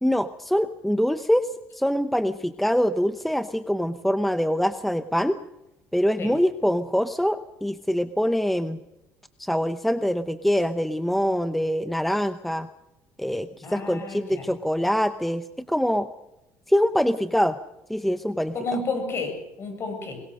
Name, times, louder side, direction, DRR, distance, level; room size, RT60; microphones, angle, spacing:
voice 1, 0.0-5.4 5.9-8.8 9.4-12.7 13.2-16.1 16.7-17.6 17.9-18.5, equal, ahead, 11 dB, 0.7 m, -24 dB
voice 2, 13.6-14.5 18.5-20.2, left 3 dB, 40° left, 5 dB, 7.5 m, -31 dB
21.5 x 21.0 x 6.5 m, 0.96 s
cardioid pair, 120°, 6 cm